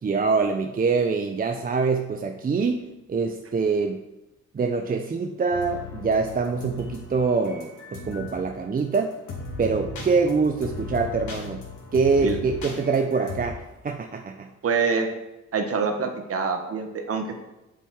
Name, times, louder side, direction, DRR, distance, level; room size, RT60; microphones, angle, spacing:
voice 1, 0.0-4.0 4.5-9.2 9.6-11.6 11.9-14.5, right 4 dB, 30° right, 6 dB, 0.7 m, -24 dB
sound 1, 5.5-8.4 8.8-9.0 9.3-13.4, left 3 dB, 70° left, 3.4 m, -37 dB
voice 2, 14.6-15.1 15.5-17.4, right 5 dB, 50° right, 5 dB, 1.5 m, -25 dB
7.5 x 7.4 x 4.8 m, 0.98 s
cardioid pair, 90°, 30 cm